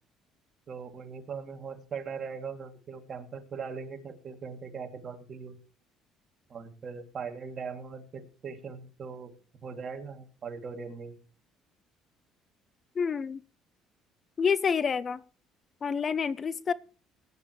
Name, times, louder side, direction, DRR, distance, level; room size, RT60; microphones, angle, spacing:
voice 1, 0.7-5.6 6.5-9.3 9.6-11.2, right 5 dB, 45° right, 6 dB, 2.6 m, -40 dB
voice 2, 13.0-13.4 14.4-15.2 15.8-16.7, left 6 dB, 40° left, 19 dB, 0.7 m, -28 dB
17.0 x 10.5 x 3.2 m, 0.35 s
supercardioid pair, 85°, 0 cm